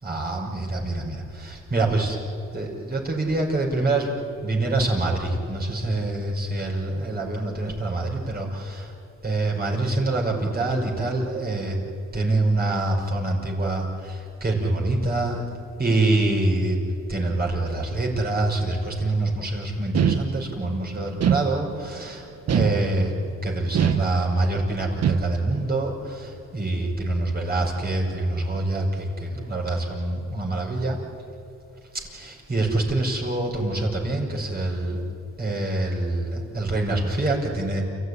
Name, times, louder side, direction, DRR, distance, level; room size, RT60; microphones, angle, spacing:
voice 1, 0.0-1.2 1.4-2.2 2.5-4.1 4.4-8.8 9.2-11.8 12.1-13.8 14.4-15.4 15.8-16.8 17.1-22.2 22.5-23.1 23.4-25.9 26.5-28.9 29.2-31.0 32.2-35.0 35.4-37.8, right 2 dB, 30° right, -1 dB, 5.8 m, -25 dB
sound 1, 19.9-20.7 21.2-22.0 22.5-23.3 23.7-24.6 25.0-25.6, right 8 dB, 55° right, 1.3 m, -24 dB
29.5 x 14.5 x 9.9 m, 2.6 s
cardioid pair, 90°, 30 cm